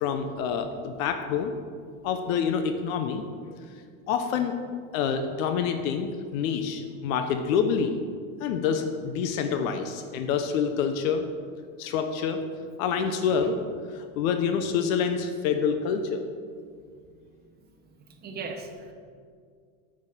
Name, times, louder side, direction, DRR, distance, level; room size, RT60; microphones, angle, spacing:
voice 1, 0.0-1.5 2.0-3.6 4.1-4.5 4.9-8.0 8.4-11.2 11.8-12.4 12.8-13.6 13.9-16.2, left 6 dB, 75° left, 7 dB, 0.9 m, -27 dB
voice 2, 18.1-18.9, right 4 dB, 25° right, 3 dB, 1.1 m, -39 dB
6.6 x 6.2 x 7.4 m, 2.1 s
supercardioid pair, 145°, 41 cm